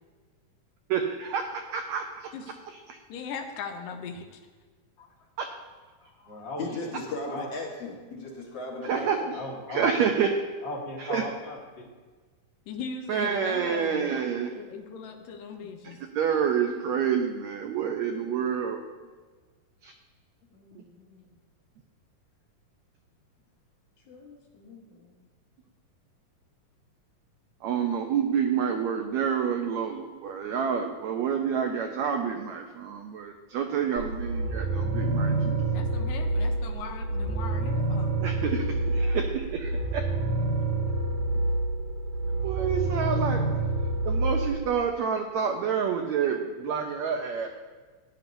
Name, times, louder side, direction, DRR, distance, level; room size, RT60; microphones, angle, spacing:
voice 1, 0.9-2.3 2.9-3.0 5.4-5.5 8.8-9.4 9.7-10.3 11.0-11.2 13.1-14.5 15.8-18.8 19.8-19.9 20.7-20.8 27.6-35.6 38.2-40.0 42.4-43.4 44.1-47.5, right 7 dB, 85° right, 4 dB, 1.6 m, -28 dB
voice 2, 3.1-4.4 12.7-14.1 14.6-16.0 35.7-38.3, left 5 dB, 80° left, 5 dB, 2.4 m, -39 dB
voice 3, 6.0-7.0 7.3-7.5 9.3-9.9 10.6-11.9, left 1 dB, 35° left, -2 dB, 1.0 m, -37 dB
voice 4, 6.6-9.1 18.2-18.6 20.5-21.3 24.1-25.2, left 2 dB, 55° left, -1 dB, 2.1 m, -39 dB
sound 1, 34.0-44.6, right 2 dB, 65° right, 2.6 m, -27 dB
15.5 x 10.5 x 2.6 m, 1.4 s
omnidirectional pair, 4.0 m